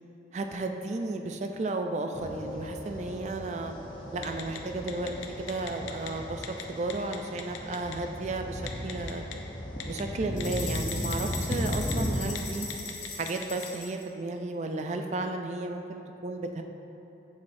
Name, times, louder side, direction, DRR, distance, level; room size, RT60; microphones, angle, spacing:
voice 1, 0.3-3.7 4.1-9.2 9.9-12.7 13.1-16.6, right 2 dB, 35° right, 5 dB, 0.3 m, -33 dB
sound 1, 2.1-12.1, equal, 25° left, 0.7 m, -36 dB
Telephone, 4.2-4.6 4.9-6.1 6.4-6.6 6.9-8.0 8.7-9.3 9.8-10.0 10.4-12.0 12.3-12.4 12.7-13.7, left 10 dB, 90° left, 0.6 m, -38 dB
sound 2, 10.4-14.0, left 4 dB, 65° left, 0.9 m, -39 dB
7.3 x 6.1 x 2.6 m, 3.0 s
head